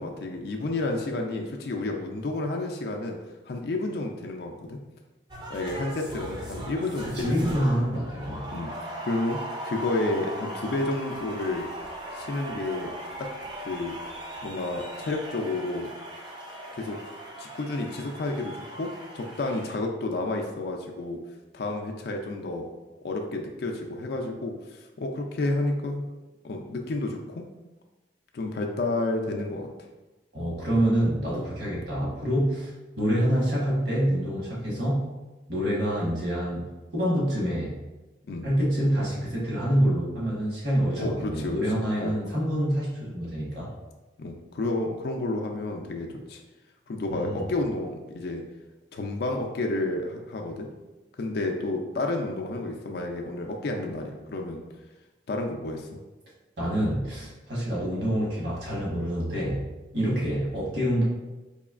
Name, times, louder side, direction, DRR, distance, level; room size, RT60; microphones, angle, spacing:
voice 1, 0.0-3.2 3.5-4.8 5.5-7.5 8.5-9.4 9.6-11.7 12.1-12.9 13.2-13.3 13.7-14.0 14.4-15.9 16.7-17.0 17.4-18.9 19.1-21.2 21.5-22.7 23.0-26.1 26.4-27.5 28.3-29.7 38.3-38.5 41.0-41.6 42.0-42.2 44.2-46.4 46.9-48.4 48.9-50.7 51.2-54.6 55.3-55.9 60.0-60.2, left 2 dB, 60° left, 2 dB, 0.3 m, -30 dB
sound 1, 5.3-19.8, right 1 dB, 25° right, 0.5 m, -38 dB
voice 2, 7.1-8.5 30.3-35.1 35.5-37.7 38.4-43.7 47.1-47.4 56.6-59.7 59.9-61.0, equal, 65° right, -5 dB, 1.2 m, -26 dB
4.1 x 3.0 x 2.4 m, 1.1 s
head